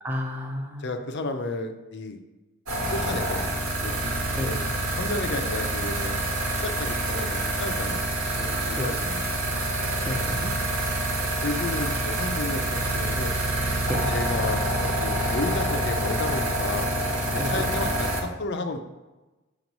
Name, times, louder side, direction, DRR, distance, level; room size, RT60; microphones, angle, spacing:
voice 1, 0.0-0.9 4.3-4.7 8.8-8.9 10.0-10.5 13.9-14.1 17.4-17.7, equal, 10° right, 1 dB, 0.5 m, -31 dB
voice 2, 0.8-2.2 2.9-6.2 6.6-9.5 11.4-13.4 14.1-16.9 17.3-18.8, left 2 dB, 50° left, 7 dB, 0.5 m, -33 dB
sound 1, 2.7-18.2, right 1 dB, 85° right, 1.3 m, -27 dB
6.3 x 3.0 x 5.2 m, 1.1 s
head